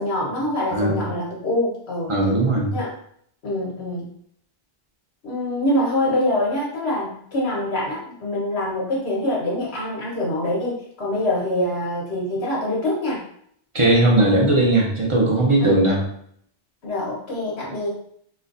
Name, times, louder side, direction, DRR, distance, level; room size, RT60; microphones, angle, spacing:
voice 1, 0.0-2.1 2.7-2.9 3.4-4.1 5.2-13.2 15.6-15.7 16.8-17.9, left 1 dB, 75° left, -5 dB, 1.5 m, -25 dB
voice 2, 0.7-1.0 2.1-2.7 13.7-16.0, right 2 dB, 35° right, -2 dB, 0.9 m, -18 dB
4.2 x 2.5 x 2.6 m, 0.67 s
omnidirectional pair, 1.1 m